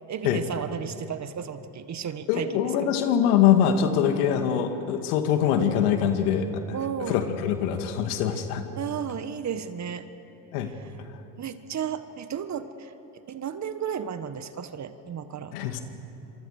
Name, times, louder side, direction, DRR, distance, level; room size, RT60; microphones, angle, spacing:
voice 1, 0.1-2.9 6.7-7.3 8.8-10.1 10.7-10.9 11.4-12.9 13.3-15.5, right 8 dB, 35° right, 11 dB, 1.6 m, -33 dB
voice 2, 2.3-6.8 7.1-8.6 10.5-10.7 15.5-15.8, left 9 dB, 75° left, 7 dB, 2.2 m, -23 dB
26.0 x 24.0 x 6.7 m, 2.9 s
hypercardioid pair, 80°, 46 cm